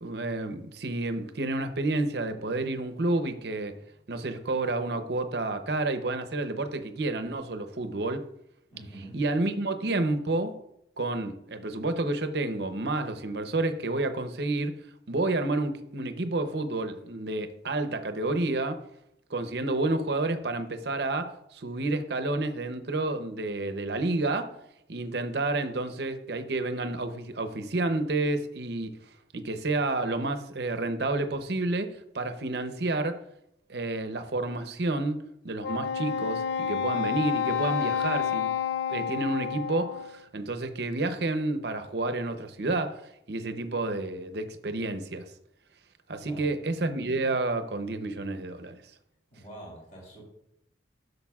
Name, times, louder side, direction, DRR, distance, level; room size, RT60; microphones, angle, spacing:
voice 1, 0.0-3.8 4.1-8.2 9.1-10.6 11.0-14.8 15.1-18.8 19.3-24.5 24.9-28.9 29.3-33.2 33.7-38.5 38.9-43.0 43.3-45.3 46.1-48.8, right 2 dB, 60° right, 0.7 m, -30 dB
voice 2, 8.7-9.2 46.2-46.5 49.3-50.2, right 1 dB, 40° left, 2.7 m, -45 dB
Wind instrument woodwind instrument, 35.6-40.2, left 7 dB, 70° left, 0.4 m, -29 dB
13.0 x 6.6 x 2.4 m
head